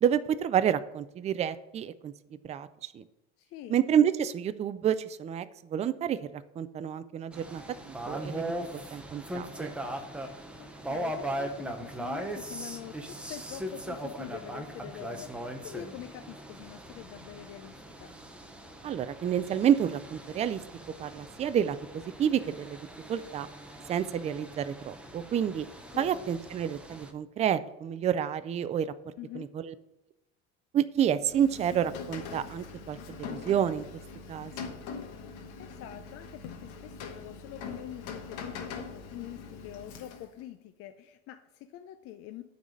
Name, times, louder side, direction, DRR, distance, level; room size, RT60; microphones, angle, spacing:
voice 1, 0.0-2.1 2.4-3.0 3.7-8.5 8.9-9.7 18.8-20.6 21.0-22.8 23.1-23.5 23.9-25.7 26.0-28.9 29.3-29.7 30.7-33.8 34.3-34.7, right 9 dB, 25° right, 13 dB, 0.3 m, -29 dB
voice 2, 3.4-3.8 10.6-18.1 25.9-26.3 29.2-29.5 35.6-42.4, left 12 dB, 50° left, 9 dB, 0.5 m, -45 dB
sound 1, 7.3-27.1, right 1 dB, 5° right, 0.7 m, -40 dB
Rain, 31.2-40.4, left 5 dB, 80° left, 1.2 m, -42 dB
9.4 x 4.0 x 6.5 m, 0.93 s
cardioid pair, 135°, 30 cm